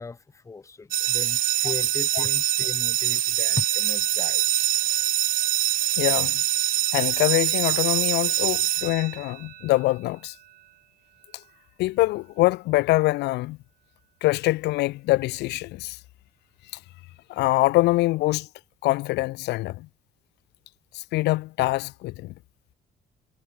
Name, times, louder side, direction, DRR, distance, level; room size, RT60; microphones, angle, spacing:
voice 1, 0.0-4.4, left 4 dB, 20° left, 0.9 m, -37 dB
sound 1, 0.9-9.6, right 13 dB, 55° right, 0.6 m, -24 dB
voice 2, 6.0-6.4 6.9-10.3 11.8-13.6 14.2-16.0 17.3-18.5 18.8-19.9 20.9-22.3, left 19 dB, 80° left, 0.8 m, -24 dB
cardioid pair, 110°, 17 cm